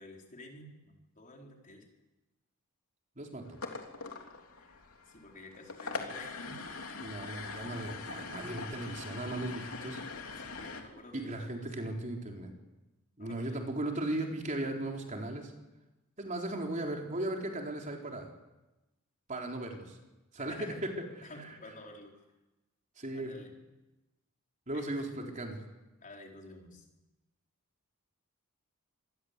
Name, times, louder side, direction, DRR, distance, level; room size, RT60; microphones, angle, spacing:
voice 1, 0.0-1.9 4.6-4.8 5.0-6.6 10.4-11.6 13.2-13.6 20.5-20.8 21.2-22.2 23.1-23.6 24.7-25.1 26.0-26.8, left 2 dB, 40° left, 1 dB, 4.7 m, -51 dB
sound 1, 3.4-10.8, left 4 dB, 75° left, 3.4 m, -42 dB
voice 2, 7.0-10.0 11.1-12.5 13.2-15.5 16.2-18.3 19.3-20.0 20.3-20.6 20.8-20.9 23.0-23.3 24.7-25.6, right 1 dB, 35° right, 1 dB, 4.0 m, -37 dB
26.0 x 20.5 x 8.3 m, 1.0 s
head